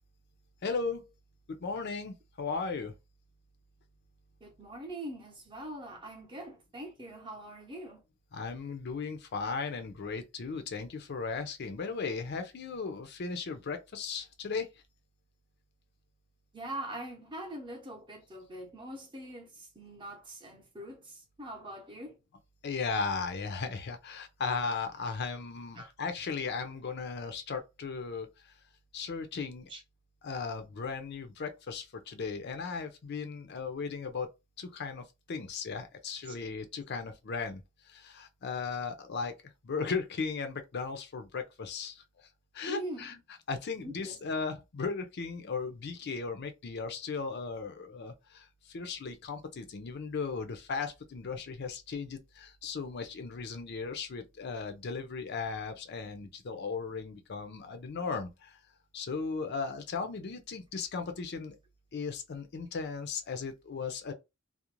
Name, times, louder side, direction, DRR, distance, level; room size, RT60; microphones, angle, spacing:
voice 1, 0.6-1.1 1.6-2.9 8.3-14.7 22.6-28.5 28.9-29.7 30.2-34.3 34.6-39.3 39.6-42.3 42.5-43.2 43.5-58.6 58.9-61.6 61.9-64.1, left 4 dB, 55° left, 0.5 m, -36 dB
voice 2, 4.4-8.0 16.5-22.2 25.8-25.9 29.7-29.8 36.3-36.4 42.7-43.2 43.8-44.2, right 1 dB, 25° right, 0.7 m, -43 dB
2.5 x 2.0 x 2.9 m
head